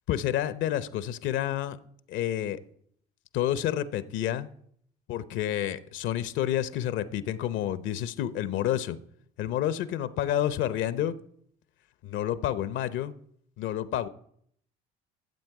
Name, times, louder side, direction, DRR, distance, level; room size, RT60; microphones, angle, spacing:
voice 1, 0.1-1.8 2.1-2.6 3.3-4.5 5.1-9.0 9.4-11.1 12.0-13.1 13.6-14.1, left 11 dB, 65° left, 16 dB, 0.7 m, -29 dB
14.5 x 7.6 x 4.7 m, 0.67 s
supercardioid pair, 70°, 21 cm